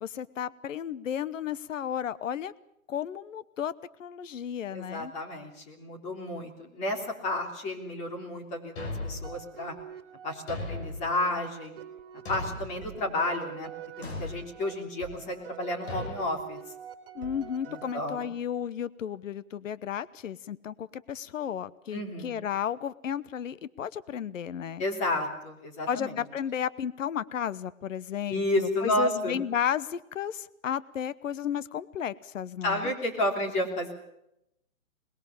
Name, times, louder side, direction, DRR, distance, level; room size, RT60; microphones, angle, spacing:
voice 1, 0.0-2.5 2.9-3.7 4.0-5.1 17.1-24.8 25.9-32.9, left 9 dB, 65° left, 17 dB, 1.0 m, -33 dB
voice 2, 4.7-9.7 10.2-11.8 12.3-13.7 14.0-16.6 17.7-18.3 21.9-22.4 24.8-26.2 28.3-29.4 32.6-33.9, left 1 dB, 15° left, 3 dB, 3.4 m, -31 dB
Thump thud, 8.8-9.4 10.5-11.1 12.3-12.8 14.0-14.4 15.9-16.2, left 2 dB, 50° left, 6.4 m, -36 dB
sound 1, 9.2-18.5, right 9 dB, 40° right, 3.4 m, -46 dB
22.0 x 20.5 x 7.2 m, 0.81 s
hypercardioid pair, 155°, 42 cm